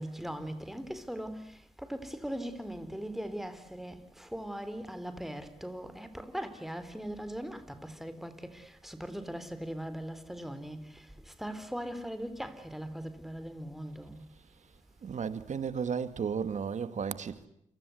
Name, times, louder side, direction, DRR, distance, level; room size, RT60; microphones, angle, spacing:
voice 1, 0.0-14.2, equal, ahead, 3.8 m, -40 dB
voice 2, 15.0-17.5, right 6 dB, 70° right, 2.1 m, -34 dB
29.5 x 25.0 x 8.0 m
cardioid pair, 60°, 13 cm